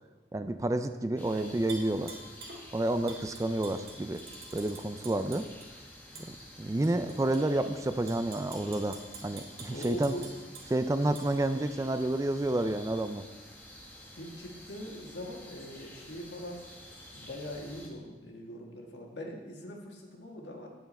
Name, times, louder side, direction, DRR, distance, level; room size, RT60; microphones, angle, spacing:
voice 1, 0.3-2.2 2.7-4.2 4.5-5.5 6.6-10.1 10.7-13.2, right 1 dB, 20° right, 9 dB, 0.3 m, -30 dB
sound 1, 1.2-17.9, left 1 dB, 10° left, 1.0 m, -50 dB
Tap / Glass, 1.7-2.6 3.1-5.7 6.2-6.3 6.8-7.4 7.9-10.7 11.2-11.3, right 4 dB, 60° right, 1.7 m, -46 dB
voice 2, 9.7-10.3 14.2-16.6 17.1-20.7, equal, 90° left, 0 dB, 1.6 m, -42 dB
9.3 x 8.0 x 4.2 m, 1.3 s
head